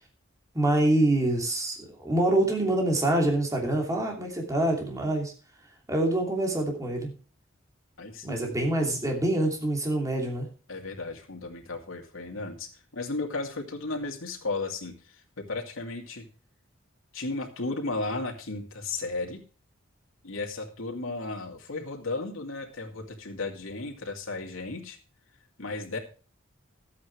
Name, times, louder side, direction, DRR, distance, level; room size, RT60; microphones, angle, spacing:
voice 1, 0.5-5.3 5.9-7.1 8.2-10.5, right 1 dB, 15° right, 1 dB, 2.8 m, -25 dB
voice 2, 8.0-8.5 10.7-16.3 17.1-19.4 20.2-25.0 25.6-26.0, left 3 dB, 90° left, 2 dB, 2.6 m, -34 dB
13.5 x 8.5 x 4.7 m, 0.37 s
head